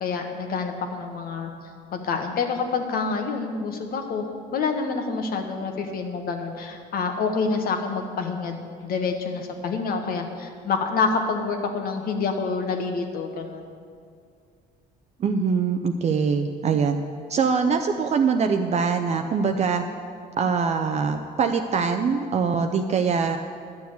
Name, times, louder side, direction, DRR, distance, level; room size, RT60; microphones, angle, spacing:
voice 1, 0.0-1.5 1.9-13.6, left 4 dB, 60° left, 4 dB, 1.4 m, -27 dB
voice 2, 15.2-17.0 17.3-19.8 20.4-23.4, right 5 dB, 40° right, 5 dB, 0.6 m, -23 dB
11.0 x 7.0 x 8.1 m, 2.2 s
cardioid pair, 110°, 17 cm